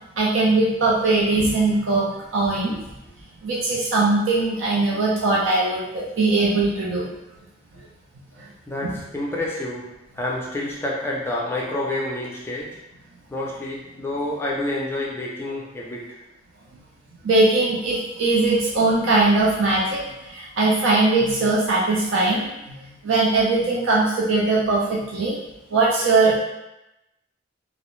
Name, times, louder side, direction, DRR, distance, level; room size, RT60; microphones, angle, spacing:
voice 1, 0.2-2.8 3.4-7.1 8.8-8.9 17.2-20.0 20.3-22.5 23.0-25.4 25.7-26.4, right 3 dB, 80° right, -5 dB, 0.5 m, -20 dB
voice 2, 8.7-9.8 10.1-12.7 13.3-16.2, left 1 dB, 10° left, -4 dB, 0.4 m, -28 dB
2.4 x 2.0 x 3.0 m, 0.93 s
head